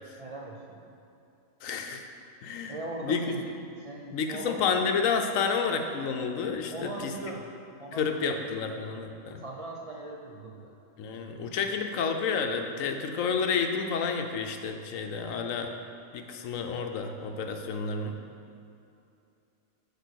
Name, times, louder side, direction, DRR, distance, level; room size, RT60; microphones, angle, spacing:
voice 1, 0.2-0.9 2.7-3.5 3.8-4.6 6.7-7.5 7.8-8.4 9.4-10.7, right 2 dB, 65° right, -2 dB, 0.3 m, -40 dB
voice 2, 1.6-2.0 2.4-2.8 3.0-3.4 4.1-7.1 8.0-9.4 11.0-15.7 16.1-18.2, left 5 dB, 70° left, 5 dB, 1.0 m, -30 dB
6.7 x 4.9 x 6.3 m, 2.7 s
omnidirectional pair, 1.5 m